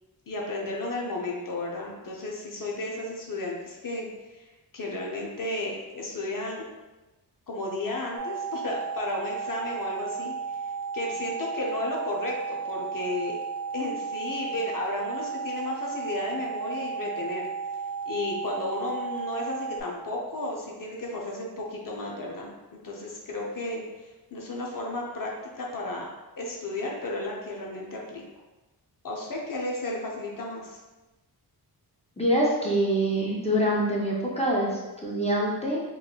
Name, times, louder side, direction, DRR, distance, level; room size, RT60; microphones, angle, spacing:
voice 1, 0.3-4.1 4.3-4.5 4.7-6.7 7.5-10.3 10.9-13.4 13.7-17.4 18.1-22.5 22.8-26.1 26.4-28.2 29.0-30.8, left 2 dB, 55° left, -1 dB, 0.6 m, -33 dB
sound 1, 8.2-19.8, right 6 dB, 35° right, 0.6 m, -34 dB
voice 2, 32.2-35.8, right 1 dB, 15° left, -5 dB, 0.6 m, -25 dB
3.7 x 3.1 x 2.4 m, 1.1 s
wide cardioid pair, 130°, 39 cm